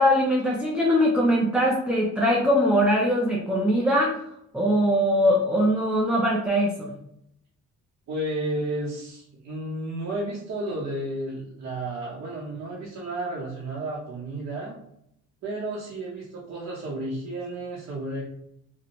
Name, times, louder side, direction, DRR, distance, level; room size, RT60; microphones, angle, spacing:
voice 1, 0.0-4.3 4.5-6.9, equal, 5° right, -3 dB, 0.4 m, -22 dB
voice 2, 8.1-14.7 15.4-18.2, right 1 dB, 60° right, -5 dB, 0.7 m, -32 dB
2.5 x 2.1 x 2.9 m, 0.74 s
cardioid pair, 90°, 30 cm